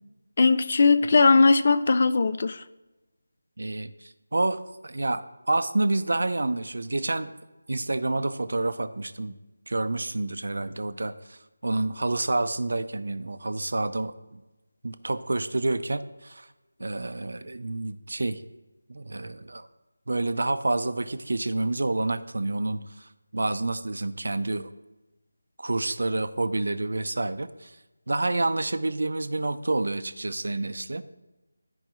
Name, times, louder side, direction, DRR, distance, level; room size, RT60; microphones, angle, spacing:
voice 1, 0.4-2.6, left 4 dB, 35° left, 12 dB, 0.3 m, -19 dB
voice 2, 3.6-7.3 7.7-9.4 9.7-14.4 14.8-16.5 16.8-18.4 18.9-19.7 20.1-24.7 25.6-27.7 28.1-31.0, right 2 dB, 70° right, 11 dB, 0.5 m, -28 dB
13.0 x 4.8 x 3.0 m, 1.1 s
figure-of-eight pair, 175°, 0 cm